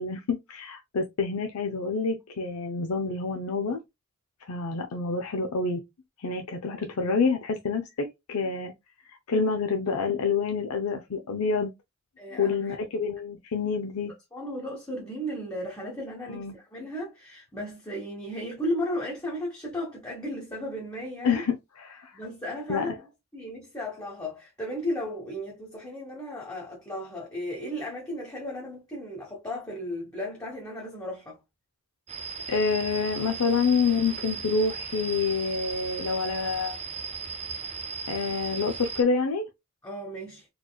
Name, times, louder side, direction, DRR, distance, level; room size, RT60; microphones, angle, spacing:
voice 1, 0.0-3.8 4.5-5.8 6.2-8.7 9.1-11.7 12.3-14.1 16.3-16.5 21.2-22.2 22.7-23.0 32.5-36.8 38.1-39.5, left 4 dB, 85° left, 0.5 m, -27 dB
voice 2, 12.2-12.7 14.3-21.4 22.1-23.0 23.3-31.4 39.8-40.5, equal, 15° left, 1.1 m, -35 dB
sound 1, 32.1-39.0, right 5 dB, 30° right, 0.6 m, -37 dB
4.1 x 3.0 x 2.2 m
head